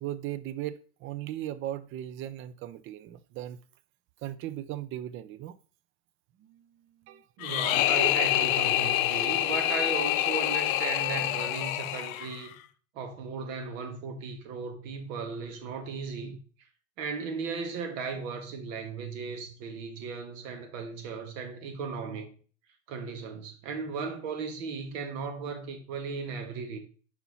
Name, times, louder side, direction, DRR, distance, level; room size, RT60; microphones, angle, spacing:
voice 1, 0.0-3.6 4.2-5.6 6.4-6.7 7.1-7.2, right 12 dB, 30° right, 0.4 m, -37 dB
sound 1, 7.4-12.5, left 14 dB, 70° left, 0.6 m, -27 dB
voice 2, 7.4-12.5 12.9-16.4 17.0-22.3 22.9-26.8, right 5 dB, 65° right, 1.7 m, -36 dB
5.7 x 4.4 x 4.1 m
hypercardioid pair, 115°, 42 cm